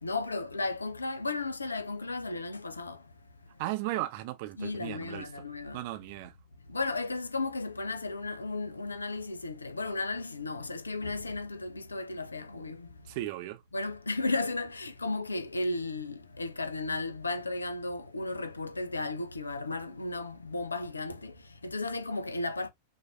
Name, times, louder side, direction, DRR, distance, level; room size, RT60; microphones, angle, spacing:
voice 1, 0.0-3.0 4.6-5.8 6.7-13.0 13.7-22.7, left 3 dB, 80° left, 0.7 m, -34 dB
voice 2, 3.6-5.4 5.7-6.3 13.1-13.6, right 16 dB, 50° right, 0.7 m, -36 dB
5.9 x 2.8 x 2.5 m
figure-of-eight pair, 90°, 0 cm